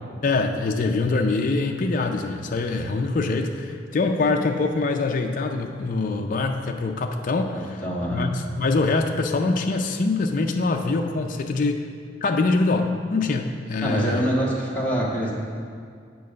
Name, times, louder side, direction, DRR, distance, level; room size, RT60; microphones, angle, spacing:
voice 1, 0.2-7.6 8.1-11.9 12.2-14.2, left 3 dB, 45° left, 3 dB, 0.4 m, -24 dB
voice 2, 7.5-8.3 13.8-15.3, right 1 dB, 10° left, -6 dB, 1.4 m, -25 dB
8.2 x 4.7 x 6.2 m, 2.2 s
head